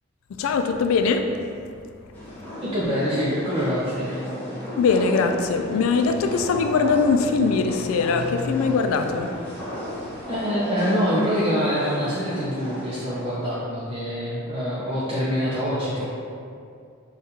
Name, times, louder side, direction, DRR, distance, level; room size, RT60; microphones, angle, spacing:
voice 1, 0.4-1.3 4.8-9.3, left 4 dB, 90° left, 6 dB, 0.3 m, -21 dB
sound 1, 2.1-13.2, left 1 dB, 10° left, 0.8 m, -35 dB
voice 2, 2.6-4.3 10.3-16.0, equal, 25° right, -9 dB, 0.5 m, -25 dB
5.1 x 2.4 x 2.7 m, 2.4 s
head